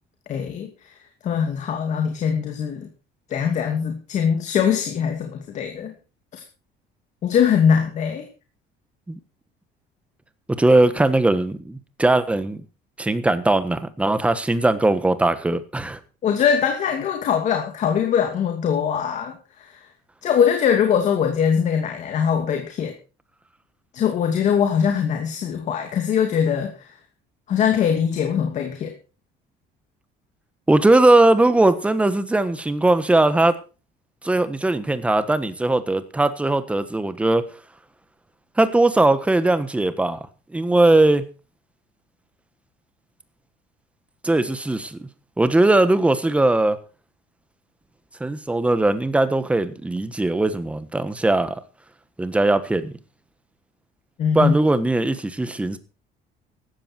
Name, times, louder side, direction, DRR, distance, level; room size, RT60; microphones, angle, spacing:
voice 1, 0.3-0.7 1.2-2.9 3.3-5.9 6.3-6.4 7.2-8.3 16.2-19.8 20.2-22.9 23.9-26.9 27.5-28.9 54.2-54.5, left 7 dB, 40° left, 2.5 m, -22 dB
voice 2, 10.5-12.6 13.0-16.0 30.7-33.5 34.2-37.4 38.6-40.2 40.5-41.2 44.2-45.1 45.4-46.8 48.2-51.6 52.2-52.9 54.3-55.8, right 2 dB, 5° right, 1.3 m, -19 dB
16.0 x 13.0 x 4.5 m
cardioid pair, 165°, 18 cm